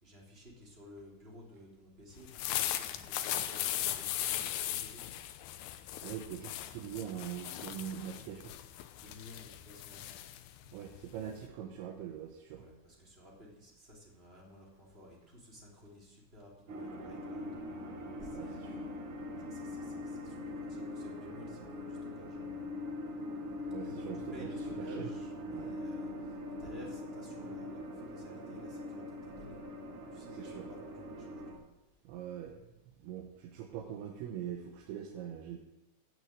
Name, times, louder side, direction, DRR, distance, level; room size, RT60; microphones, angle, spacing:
voice 1, 0.0-5.1 8.9-10.1 12.6-17.5 18.2-19.0 19.5-22.4 23.8-29.6 30.1-31.6, left 1 dB, 15° right, -3 dB, 2.8 m, -54 dB
sound 1, 2.2-11.5, left 12 dB, 85° left, 2.4 m, -38 dB
voice 2, 6.0-8.5 10.7-12.6 18.3-18.5 18.7-18.9 23.7-25.1 25.5-25.8 30.3-30.7 32.0-32.6 33.0-35.6, right 9 dB, 75° right, 2 dB, 3.3 m, -43 dB
sound 2, 16.7-31.5, left 1 dB, 50° right, 3.0 m, -42 dB
17.5 x 6.4 x 7.8 m, 0.97 s
omnidirectional pair, 5.7 m